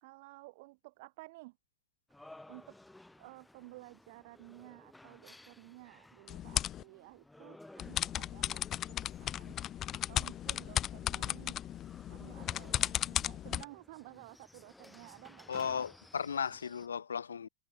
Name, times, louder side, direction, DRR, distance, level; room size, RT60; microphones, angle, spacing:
voice 1, 0.0-1.5 2.2-2.8 3.2-11.6 12.1-15.7, right 23 dB, 50° right, 2.3 m, -54 dB
sound 1, 2.1-16.9, left 1 dB, 5° left, 3.0 m, -57 dB
sound 2, 6.3-6.8 7.8-13.6, left 11 dB, 30° left, 0.6 m, -35 dB
voice 2, 15.5-17.5, left 7 dB, 70° left, 0.4 m, -36 dB
figure-of-eight pair, 90°, 0 cm